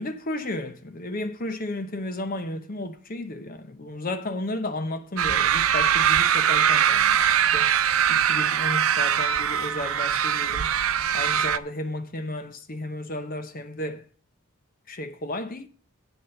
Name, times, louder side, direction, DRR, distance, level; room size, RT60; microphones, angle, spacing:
voice 1, 0.0-10.7 11.1-14.1 14.9-15.7, left 1 dB, 40° left, 0.8 m, -33 dB
sound 1, 5.2-11.6, right 9 dB, 70° right, 0.6 m, -22 dB
9.8 x 4.3 x 7.6 m
head